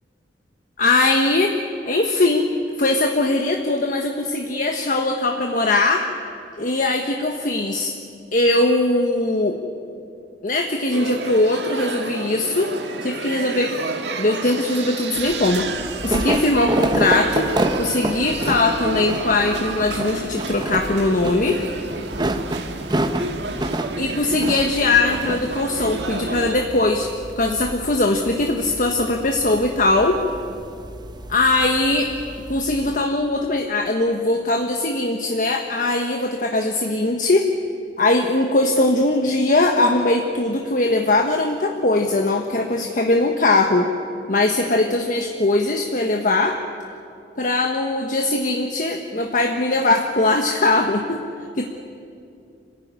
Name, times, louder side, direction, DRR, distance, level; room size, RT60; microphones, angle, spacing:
voice 1, 0.8-1.6 1.8-2.5 2.8-6.1 6.6-7.9 8.3-9.6 10.4-12.7 13.0-13.8 14.2-15.7 16.0-17.5 17.8-21.6 24.0-30.2 31.3-32.1 32.5-37.5 38.0-43.9 44.3-46.6 47.4-51.2 51.6-51.7, left 2 dB, 50° left, 3 dB, 1.3 m, -20 dB
sound 1, 10.9-26.5, right 3 dB, 75° right, 1.8 m, -30 dB
sound 2, 15.2-33.0, right 1 dB, 25° right, 1.2 m, -29 dB
25.5 x 15.5 x 10.0 m, 2.5 s
head